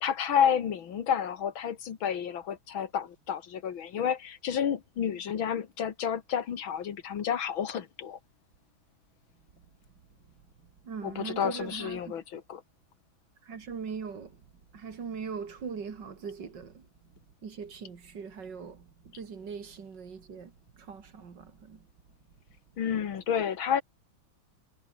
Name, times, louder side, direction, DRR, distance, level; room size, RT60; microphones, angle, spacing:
voice 1, 0.0-8.2 11.0-12.6 22.8-23.8, left 8 dB, 85° left, 2.4 m, -30 dB
voice 2, 10.8-12.1 13.4-14.4 14.7-16.8 17.4-21.8, right 6 dB, 60° right, 2.8 m, -40 dB
omnidirectional pair, 2.1 m